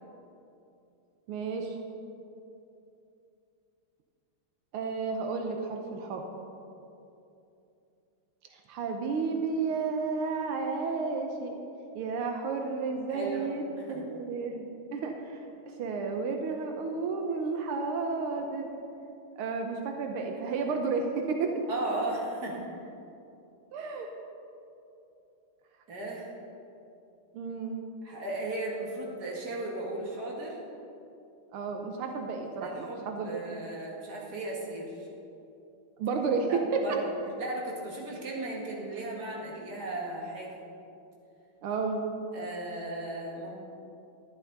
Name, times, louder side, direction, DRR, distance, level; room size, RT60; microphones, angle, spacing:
voice 1, 1.3-1.8 4.7-6.2 8.5-11.6 12.0-14.7 14.9-15.4 15.8-18.7 19.4-21.5 23.7-24.1 27.3-27.8 31.5-33.3 36.0-36.8 41.6-42.0, right 4 dB, 90° right, 3 dB, 1.7 m, -32 dB
voice 2, 13.1-13.5 13.8-14.1 21.7-22.9 25.9-26.3 28.0-30.6 32.6-35.1 36.5-37.0 37.4-40.6 42.3-43.5, right 2 dB, 50° right, -3 dB, 2.3 m, -36 dB
11.5 x 11.0 x 4.0 m, 2.7 s
omnidirectional pair, 2.3 m